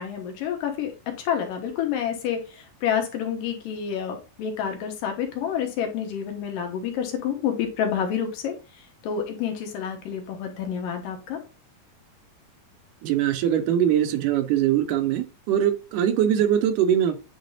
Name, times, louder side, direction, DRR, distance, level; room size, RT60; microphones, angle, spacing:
voice 1, 0.0-8.5 9.0-11.4, left 8 dB, 80° left, 3 dB, 2.8 m, -28 dB
voice 2, 13.0-17.2, right 10 dB, 80° right, 8 dB, 2.1 m, -22 dB
9.3 x 4.0 x 2.6 m, 0.33 s
omnidirectional pair, 4.0 m